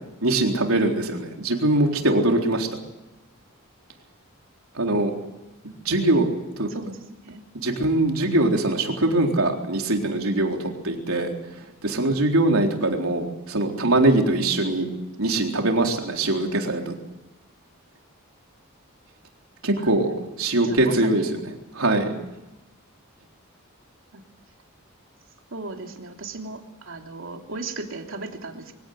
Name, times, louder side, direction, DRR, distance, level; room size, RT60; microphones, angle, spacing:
voice 1, 0.2-2.7 4.7-5.1 5.6-6.3 6.6-6.7 7.5-11.3 11.8-14.9 15.2-16.9 19.6-20.1 20.4-21.3 21.7-22.1, right 2 dB, 90° right, 2 dB, 4.0 m, -22 dB
voice 2, 20.6-21.3 24.1-24.2 25.5-28.7, right 3 dB, 65° right, 3 dB, 3.0 m, -36 dB
24.0 x 17.0 x 9.6 m, 0.97 s
head